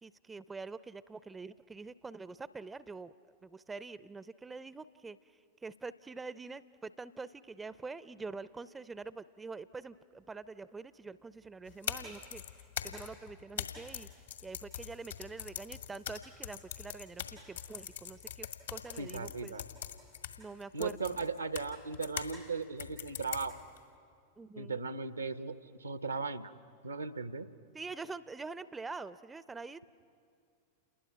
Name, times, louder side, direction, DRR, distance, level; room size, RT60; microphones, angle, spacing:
voice 1, 0.0-3.1 3.4-5.2 5.6-12.4 12.8-14.1 14.4-19.6 20.4-21.2 24.4-24.9 27.7-29.8, right 4 dB, 10° right, 17 dB, 0.5 m, -45 dB
sound 1, 11.7-22.4 22.8-23.8, left 9 dB, 70° left, 1.8 m, -42 dB
voice 2, 19.0-19.6 20.7-23.5 24.6-26.5 26.8-27.5, right 4 dB, 80° right, 13 dB, 0.8 m, -37 dB
28.5 x 20.5 x 5.8 m, 2.3 s
figure-of-eight pair, 90°, 0 cm